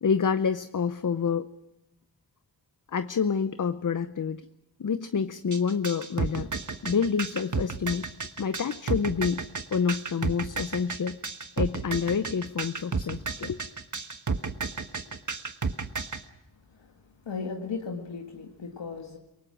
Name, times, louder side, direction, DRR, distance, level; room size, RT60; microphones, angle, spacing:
voice 1, 0.0-1.5 2.9-4.5 4.8-6.5 6.8-8.1 8.4-9.4 9.7-11.2 11.6-13.6, left 6 dB, 45° left, 12 dB, 0.7 m, -28 dB
sound 1, 5.5-16.2, right 4 dB, 45° right, 1.4 m, -32 dB
voice 2, 16.7-19.2, left 5 dB, 85° left, 1 dB, 2.0 m, -37 dB
28.0 x 18.5 x 6.3 m, 0.90 s
cardioid pair, 45°, 43 cm